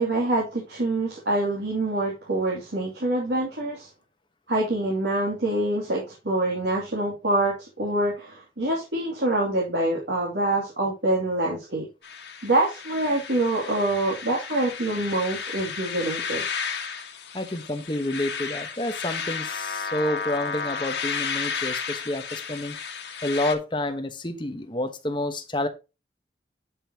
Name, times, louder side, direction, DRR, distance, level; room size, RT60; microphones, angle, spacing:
voice 1, 0.0-3.9 4.5-11.9 12.4-16.4, right 2 dB, 85° right, 2.7 m, -25 dB
sound 1, 12.0-23.5, left 6 dB, 85° left, 1.7 m, -33 dB
voice 2, 17.3-22.8 23.2-25.7, left 1 dB, 25° left, 1.1 m, -29 dB
11.0 x 5.5 x 2.9 m
head